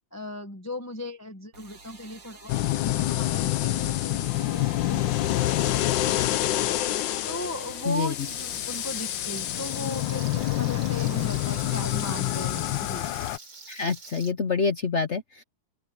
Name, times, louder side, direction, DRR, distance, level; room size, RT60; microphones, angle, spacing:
voice 1, 0.1-2.6 2.8-6.7 7.3-13.1, left 1 dB, 10° left, 1.1 m, -37 dB
sound 1, 1.5-12.2, right 4 dB, 45° right, 2.9 m, -49 dB
sound 2, 2.5-13.4, left 15 dB, 75° left, 1.4 m, -27 dB
Frying (food), 8.2-14.3, right 4 dB, 75° right, 4.3 m, -45 dB
voice 2, 13.7-15.4, left 5 dB, 45° left, 1.0 m, -27 dB
open air
omnidirectional pair, 2.0 m